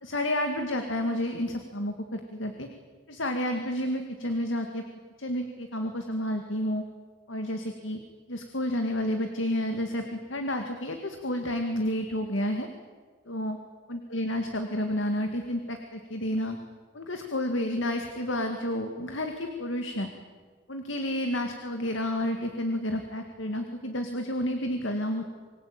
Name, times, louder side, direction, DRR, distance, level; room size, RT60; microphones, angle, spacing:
voice 1, 0.0-2.7 3.1-4.8 5.2-6.8 7.3-8.0 8.3-12.7 13.3-13.6 13.9-16.6 16.9-20.1 20.7-25.2, left 1 dB, 70° left, 5 dB, 2.2 m, -30 dB
26.0 x 21.5 x 8.9 m, 1.5 s
head